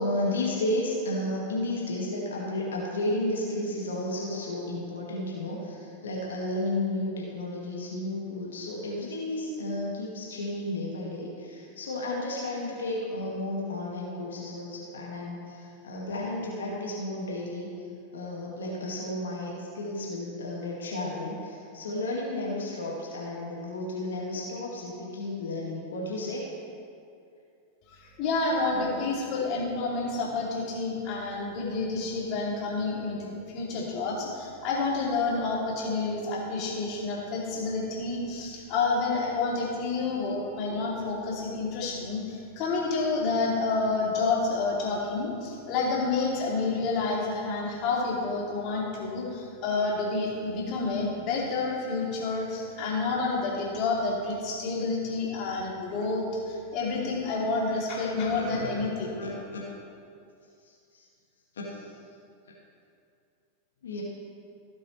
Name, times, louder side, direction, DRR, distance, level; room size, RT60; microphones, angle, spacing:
voice 1, 0.0-17.7 18.1-26.5 28.7-29.0 58.3-58.8 59.2-59.6 61.7-61.8 63.8-64.0, left 1 dB, 65° left, -4 dB, 1.9 m, -32 dB
voice 2, 27.9-59.1, left 3 dB, 40° left, -4 dB, 2.7 m, -29 dB
16.5 x 7.5 x 3.2 m, 2.4 s
figure-of-eight pair, 90°, 0 cm